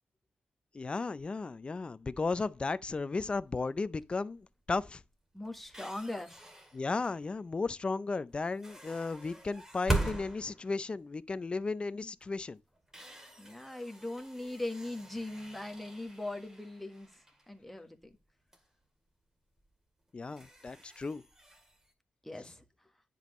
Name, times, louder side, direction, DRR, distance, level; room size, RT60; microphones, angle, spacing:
voice 1, 0.7-5.0 6.7-12.6 20.1-21.2, left 3 dB, 30° left, 0.5 m, -35 dB
sound 1, 3.4-3.8 4.4-4.6 4.9-7.4 8.4-11.8 12.2-12.3 12.7-18.2 18.5-18.6 19.5-19.7 20.1-21.9, right 2 dB, 15° right, 2.1 m, -41 dB
voice 2, 5.3-6.4 11.9-12.1 13.4-18.1 22.2-22.6, left 2 dB, 5° left, 1.3 m, -40 dB
10.0 x 5.4 x 3.1 m
cardioid pair, 100°, 3 cm